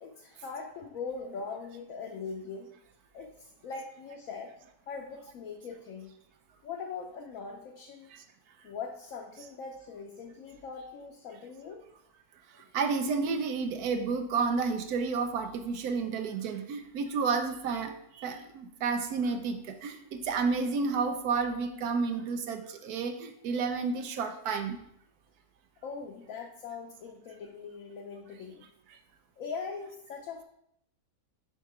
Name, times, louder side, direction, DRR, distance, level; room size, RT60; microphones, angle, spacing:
voice 1, 0.0-2.7 3.1-4.5 4.9-6.1 6.6-8.1 8.6-11.8 25.8-28.6 29.4-30.4, left 5 dB, 70° left, 1 dB, 1.1 m, -41 dB
voice 2, 12.5-24.8, right 5 dB, 85° right, 6 dB, 1.2 m, -31 dB
5.5 x 4.6 x 4.8 m, 0.74 s
omnidirectional pair, 1.6 m